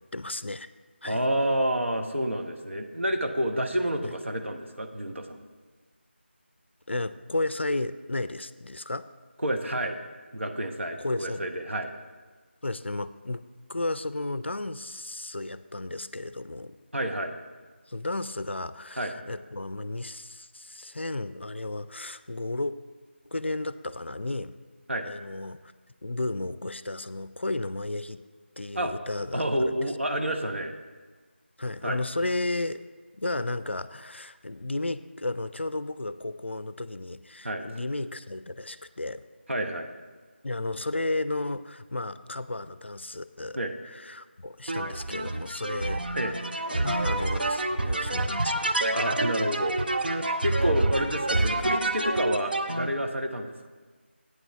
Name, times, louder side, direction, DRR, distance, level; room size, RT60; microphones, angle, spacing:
voice 1, 0.1-0.7 1.0-1.2 4.0-4.1 6.9-9.1 11.0-11.5 12.6-13.4 13.7-16.8 17.9-22.8 23.3-24.6 25.0-25.6 26.0-28.2 28.6-29.9 31.6-32.8 33.2-39.2 40.4-43.6 43.9-46.2 46.7-48.8 50.9-51.1, left 2 dB, 70° left, 14 dB, 0.4 m, -33 dB
voice 2, 1.0-5.4 9.4-10.0 10.3-11.9 16.9-17.3 19.0-19.1 24.9-25.0 28.7-28.9 29.3-30.7 31.8-32.0 37.4-37.6 39.5-39.9 43.5-43.7 46.1-46.3 48.9-49.8 50.0-53.7, equal, 85° right, 4 dB, 1.1 m, -29 dB
sound 1, 44.7-52.9, right 2 dB, 50° right, 0.6 m, -28 dB
8.8 x 7.7 x 5.8 m, 1.4 s
figure-of-eight pair, 165°, 6 cm